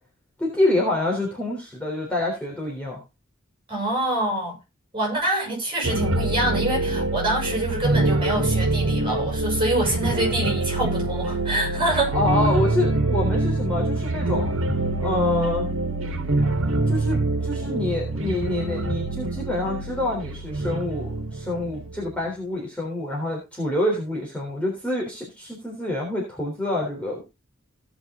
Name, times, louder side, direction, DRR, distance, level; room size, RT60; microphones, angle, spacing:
voice 1, 0.4-3.0 12.1-14.5 15.0-15.7 16.9-27.2, left 2 dB, 5° left, 3.6 m, -27 dB
voice 2, 3.7-4.6 4.9-12.2, right 1 dB, 25° right, 7.6 m, -25 dB
sound 1, 5.8-22.2, right 2 dB, 90° right, 1.6 m, -25 dB
17.0 x 6.0 x 3.8 m
head